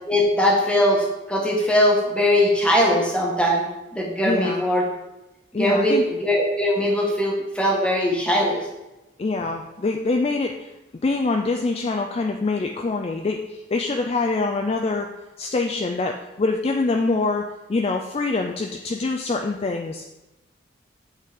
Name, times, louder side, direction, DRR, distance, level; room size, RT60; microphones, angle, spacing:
voice 1, 0.1-3.7 3.9-4.8 5.6-6.0 6.2-8.6, left 1 dB, 5° left, -2 dB, 1.1 m, -20 dB
voice 2, 4.2-4.6 5.5-6.1 9.2-10.7 11.0-15.1 15.4-20.0, left 3 dB, 30° left, 3 dB, 0.3 m, -25 dB
8.2 x 3.7 x 4.8 m, 0.99 s
head